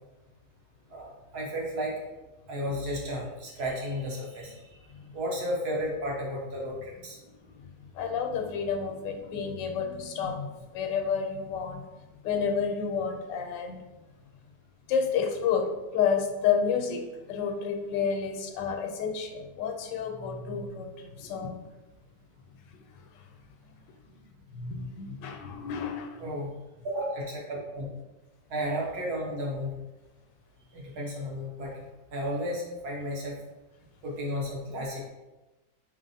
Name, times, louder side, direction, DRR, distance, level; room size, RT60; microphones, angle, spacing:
voice 1, 0.9-2.0 2.5-4.6 5.1-7.2 26.2-26.5 26.8-27.9 28.5-29.8 30.7-31.8 32.1-33.4 34.0-35.1, equal, 65° right, -3 dB, 1.4 m, -33 dB
voice 2, 8.0-11.8 12.2-13.8 14.9-15.7 15.9-17.0 17.3-21.6 24.5-26.2, left 6 dB, 90° left, 4 dB, 1.3 m, -30 dB
4.2 x 3.2 x 2.6 m, 1.1 s
omnidirectional pair, 1.9 m